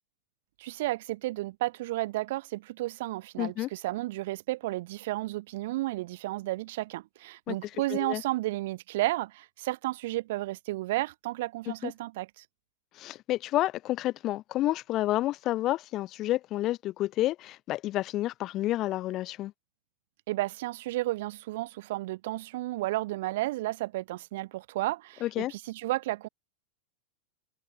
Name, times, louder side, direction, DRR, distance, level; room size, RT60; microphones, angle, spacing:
voice 1, 0.6-12.4 20.3-26.3, right 17 dB, 55° right, 5.6 m, -32 dB
voice 2, 3.4-3.7 7.5-7.6 7.9-8.2 11.7-11.9 13.0-19.5 25.2-25.5, left 15 dB, 35° left, 0.7 m, -30 dB
figure-of-eight pair, 90°, 0 cm